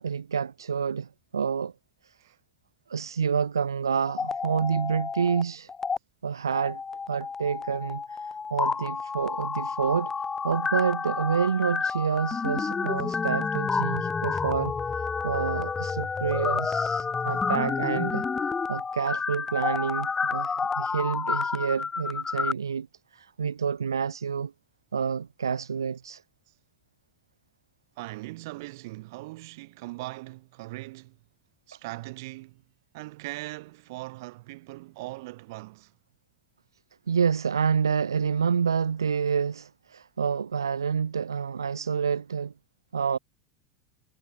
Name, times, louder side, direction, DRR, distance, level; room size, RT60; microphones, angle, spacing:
voice 1, 0.0-1.7 2.0-2.1 2.9-5.7 6.2-6.8 7.1-10.1 10.4-14.7 15.2-18.3 18.7-22.9 23.1-24.5 24.9-26.2 37.1-42.5 42.9-43.2, right 6 dB, 75° right, 0.5 m, -28 dB
sound 1, 4.0-5.4 5.7-6.0 6.5-22.5, left 5 dB, 15° left, 0.6 m, -30 dB
voice 2, 28.0-31.2 31.7-32.6 32.9-35.9, right 21 dB, 55° right, 2.8 m, -40 dB
figure-of-eight pair, 80°, 2 cm